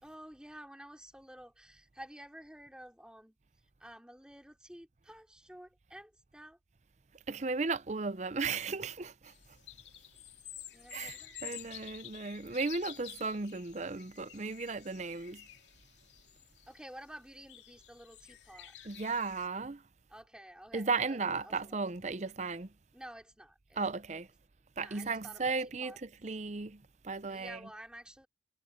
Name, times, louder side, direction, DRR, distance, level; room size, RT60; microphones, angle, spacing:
voice 1, 0.0-3.4 3.8-6.6 10.7-11.4 16.7-18.7 20.1-21.8 22.9-23.8 24.8-25.5 25.8-26.0 27.3-28.3, equal, 5° right, 2.9 m, -51 dB
voice 2, 7.3-9.3 10.9-15.4 18.8-19.8 20.7-22.7 23.8-24.3 24.8-27.6, right 4 dB, 40° right, 0.6 m, -35 dB
sound 1, 9.2-19.5, left 11 dB, 75° left, 2.8 m, -51 dB
head